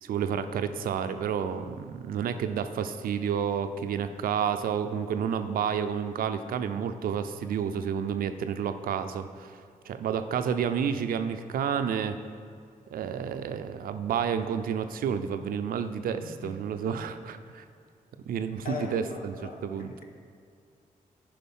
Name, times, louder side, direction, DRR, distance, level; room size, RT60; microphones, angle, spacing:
voice 1, 0.0-12.2 12.9-17.6 18.3-19.4 19.6-19.9, right 7 dB, 90° right, 9 dB, 0.5 m, -30 dB
voice 2, 16.2-16.5 18.6-19.7, left 4 dB, 80° left, 1 dB, 1.3 m, -38 dB
10.0 x 5.2 x 5.5 m, 2.4 s
cardioid pair, 60°, 15 cm